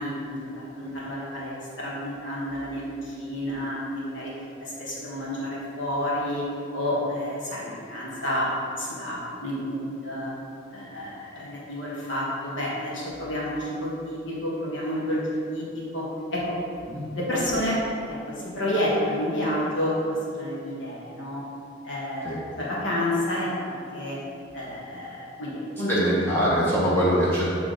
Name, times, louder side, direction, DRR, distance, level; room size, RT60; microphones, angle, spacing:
voice 1, 0.0-4.3 4.6-6.4 6.7-8.5 8.8-10.3 10.7-16.6 17.1-17.8 18.1-21.4 21.8-24.2 24.5-25.9, left 1 dB, 70° left, -6 dB, 1.5 m, -30 dB
voice 2, 25.9-27.4, equal, 10° left, -8 dB, 0.9 m, -22 dB
8.3 x 3.4 x 3.8 m, 2.5 s
head